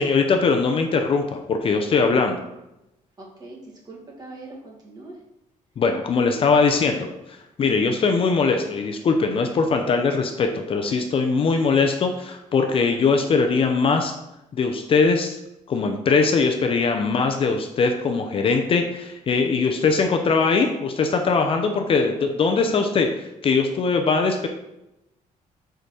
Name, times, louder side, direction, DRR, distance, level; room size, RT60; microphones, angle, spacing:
voice 1, 0.0-2.4 5.8-14.1 14.5-15.4 15.7-24.5, left 4 dB, 40° left, 4 dB, 0.7 m, -21 dB
voice 2, 3.2-5.2, right 2 dB, 30° right, -3 dB, 2.0 m, -41 dB
5.1 x 5.1 x 6.2 m, 0.90 s
cardioid pair, 160°, 14 cm